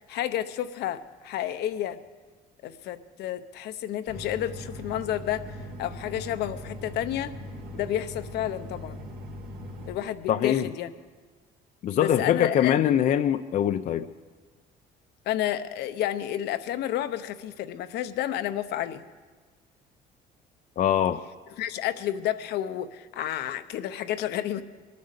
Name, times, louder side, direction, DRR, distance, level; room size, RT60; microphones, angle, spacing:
voice 1, 0.0-2.0 2.6-7.3 7.7-9.0 9.9-10.9 11.9-12.7 15.3-19.0 21.6-24.6, left 11 dB, 75° left, 10 dB, 0.8 m, -31 dB
sound 1, 4.1-9.9, left 1 dB, 65° right, 2.0 m, -40 dB
voice 2, 10.3-10.7 11.8-14.1 20.8-21.2, left 10 dB, 50° left, 9 dB, 0.5 m, -23 dB
22.5 x 9.4 x 6.6 m, 1.4 s
cardioid pair, 110°, 17 cm